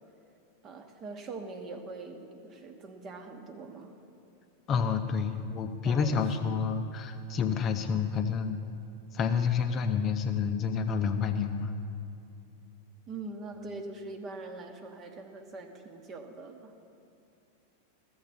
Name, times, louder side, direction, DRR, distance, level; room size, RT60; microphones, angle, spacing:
voice 1, 0.6-3.9 5.8-6.2 7.7-7.8 13.1-16.7, right 3 dB, 30° right, 6 dB, 1.1 m, -43 dB
voice 2, 4.7-8.6 9.1-11.7, left 6 dB, 30° left, 6 dB, 0.6 m, -29 dB
14.5 x 7.1 x 7.1 m, 2.6 s
figure-of-eight pair, 90°, 0 cm